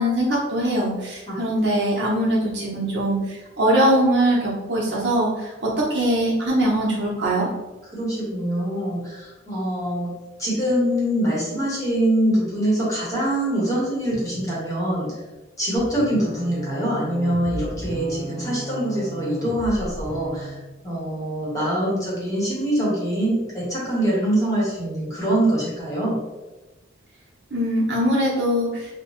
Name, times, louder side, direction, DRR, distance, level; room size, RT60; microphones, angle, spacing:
voice 1, 0.0-7.5 27.5-29.0, right 1 dB, 60° right, -4 dB, 0.8 m, -22 dB
voice 2, 7.9-10.1 10.4-15.1 15.6-20.5 20.8-26.2, right 1 dB, 15° left, -7 dB, 0.9 m, -24 dB
sound 1, 15.8-20.6, right 1 dB, 85° left, 0.7 m, -35 dB
2.8 x 2.1 x 3.0 m, 1.1 s
head